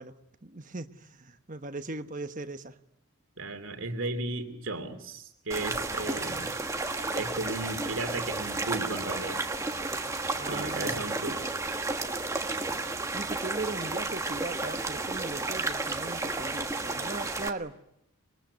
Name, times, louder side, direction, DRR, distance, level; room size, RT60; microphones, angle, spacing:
voice 1, 0.0-2.8 10.3-11.0 13.1-17.8, right 2 dB, 35° right, 1.2 m, -39 dB
voice 2, 3.4-6.5 7.1-9.4 10.5-11.4, right 2 dB, 60° right, 2.8 m, -35 dB
sound 1, 5.5-17.5, right 2 dB, 15° right, 1.4 m, -32 dB
26.5 x 22.0 x 9.6 m
head